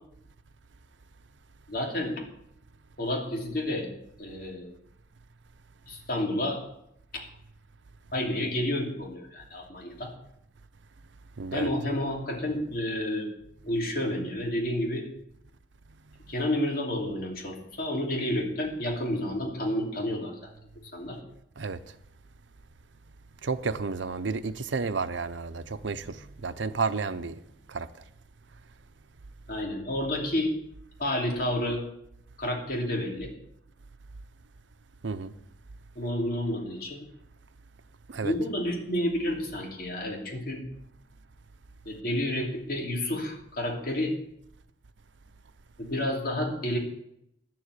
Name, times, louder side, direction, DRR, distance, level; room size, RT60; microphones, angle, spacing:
voice 1, 1.7-2.1 3.0-3.9 4.2-4.7 5.9-6.6 7.1-7.2 8.1-10.1 11.5-13.3 13.6-15.0 16.3-20.3 20.9-21.2 29.5-30.5 31.0-31.8 32.4-33.3 35.9-37.0 38.2-40.6 41.8-44.1 45.8-46.8, left 1 dB, 55° left, 2.9 m, -30 dB
voice 2, 11.4-11.7 21.6-21.8 23.4-27.4 27.7-27.9 35.0-35.3 38.1-38.3, right 4 dB, 90° right, 0.7 m, -31 dB
11.0 x 7.8 x 8.2 m
head